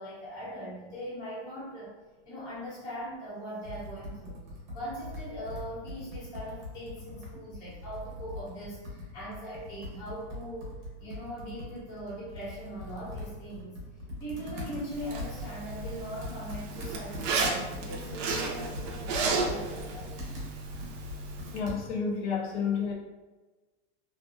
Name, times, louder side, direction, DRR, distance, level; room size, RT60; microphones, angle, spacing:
voice 1, 0.0-1.9 2.3-4.4 4.7-10.7 11.0-13.8 14.2-20.2, equal, 10° left, -10 dB, 0.4 m, -40 dB
Computer keyboard, 3.6-22.1, left 1 dB, 40° right, 0.8 m, -42 dB
Zipper (clothing), 14.9-21.6, right 3 dB, 80° right, 0.6 m, -34 dB
voice 2, 21.5-22.9, left 6 dB, 70° left, -1 dB, 0.7 m, -30 dB
2.6 x 2.2 x 2.4 m, 1.2 s
supercardioid pair, 170°, 36 cm